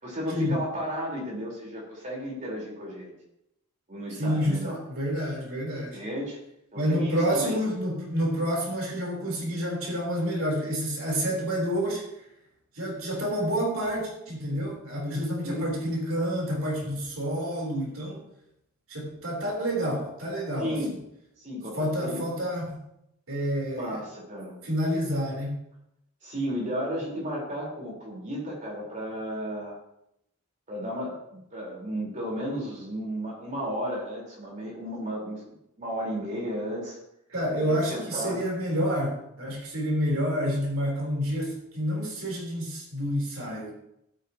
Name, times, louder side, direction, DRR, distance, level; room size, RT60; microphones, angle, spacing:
voice 1, 0.0-3.1 3.9-4.8 5.9-6.4 6.7-7.6 15.4-15.7 20.6-20.9 21.4-22.2 23.7-24.6 26.2-29.8 30.7-37.0 37.6-38.4, equal, 35° right, -3 dB, 4.4 m, -33 dB
voice 2, 4.2-6.0 6.8-12.0 12.7-18.2 18.9-20.8 21.7-22.8 23.3-24.0 24.6-25.6 37.3-43.7, equal, 65° right, -2 dB, 3.9 m, -28 dB
15.5 x 8.7 x 3.0 m, 0.79 s
head